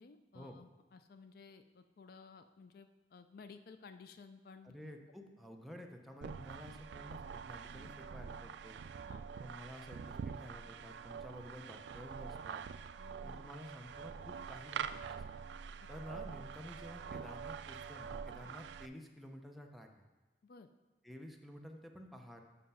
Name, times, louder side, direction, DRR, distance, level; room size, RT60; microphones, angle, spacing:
voice 1, 0.0-4.7 9.1-9.2 13.0-13.4 15.8-15.9 18.4-18.5 20.4-20.7, left 4 dB, 55° left, 9 dB, 0.4 m, -56 dB
voice 2, 4.6-8.8 9.4-12.6 13.2-15.2 15.9-19.9 21.0-22.4, equal, ahead, 2 dB, 0.6 m, -51 dB
sound 1, 6.2-18.9, right 6 dB, 75° right, 0.3 m, -45 dB
7.4 x 5.7 x 5.5 m, 1.2 s
head